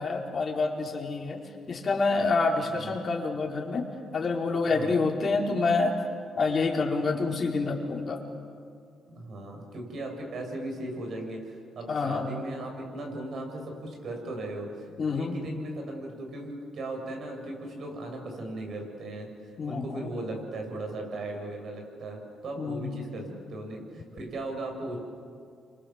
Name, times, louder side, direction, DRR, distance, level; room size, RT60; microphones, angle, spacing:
voice 1, 0.0-1.4 1.7-3.8 4.1-5.9 6.3-8.2 11.9-12.3 15.0-15.4 19.6-20.1 22.6-23.0, left 3 dB, 40° left, 0 dB, 4.8 m, -27 dB
voice 2, 2.7-3.0 4.6-5.1 9.1-19.3 19.6-25.0, right 2 dB, 60° right, 2 dB, 7.5 m, -37 dB
30.0 x 25.5 x 7.5 m, 2.3 s
cardioid pair, 90°, 0 cm